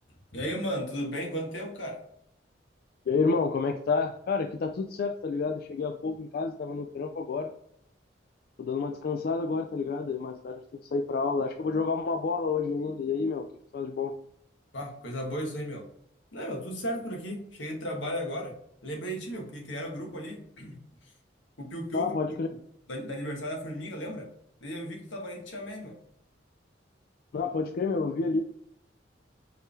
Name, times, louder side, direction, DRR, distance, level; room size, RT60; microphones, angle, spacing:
voice 1, 0.3-2.0 14.7-15.9 16.3-18.6 18.8-20.8 21.6-22.1 22.9-24.3 24.6-26.0, equal, 85° left, 1 dB, 1.3 m, -35 dB
voice 2, 3.1-7.5 8.6-10.6 10.9-13.5 13.7-14.1 21.9-22.5 27.3-28.5, left 4 dB, 50° left, 5 dB, 0.3 m, -29 dB
4.6 x 3.3 x 3.3 m, 0.69 s
head